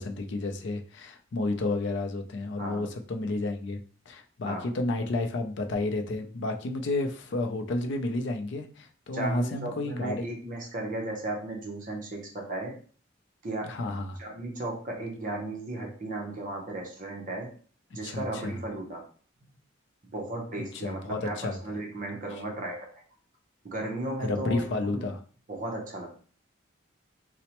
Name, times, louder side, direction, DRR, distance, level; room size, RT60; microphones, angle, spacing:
voice 1, 0.0-3.8 4.1-10.3 13.7-14.2 18.0-18.6 20.8-21.6 24.3-25.2, left 2 dB, 60° left, 5 dB, 0.4 m, -31 dB
voice 2, 2.6-2.9 4.5-4.7 9.1-12.8 13.4-13.7 14.2-17.5 17.9-19.0 20.1-22.9 23.6-24.6 24.9-25.1 25.5-26.2, right 2 dB, 45° right, 0 dB, 0.6 m, -35 dB
4.1 x 2.0 x 2.9 m, 0.43 s
head